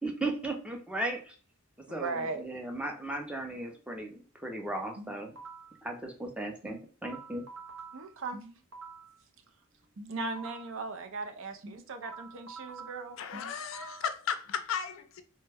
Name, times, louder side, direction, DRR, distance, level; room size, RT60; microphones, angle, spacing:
voice 1, 0.0-1.3 1.9-5.4 5.8-7.4, right 2 dB, 5° right, 0.5 m, -36 dB
voice 2, 1.9-2.4 7.9-8.4 10.1-13.2, right 3 dB, 65° right, 0.5 m, -37 dB
sound 1, 5.0-5.8 6.6-9.2 10.0-10.8 11.6-14.2, right 3 dB, 90° right, 0.8 m, -47 dB
voice 3, 13.2-15.2, left 7 dB, 65° left, 0.4 m, -35 dB
3.2 x 2.1 x 3.3 m
head